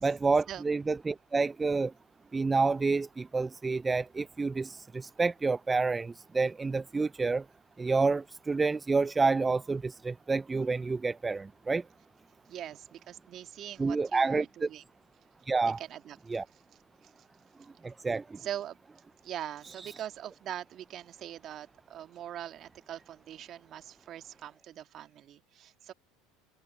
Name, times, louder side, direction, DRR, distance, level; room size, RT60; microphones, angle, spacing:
voice 1, 0.0-1.9 2.3-7.5 7.8-11.9 13.8-14.7 15.5-15.8 16.3-16.4 17.8-18.4, right 4 dB, 20° right, 0.5 m, -29 dB
voice 2, 12.5-14.8 15.8-16.2 16.5-16.6 17.0-17.1 18.4-18.8 19.2-25.9, right 11 dB, 45° right, 2.0 m, -42 dB
hypercardioid pair, 80°, 0 cm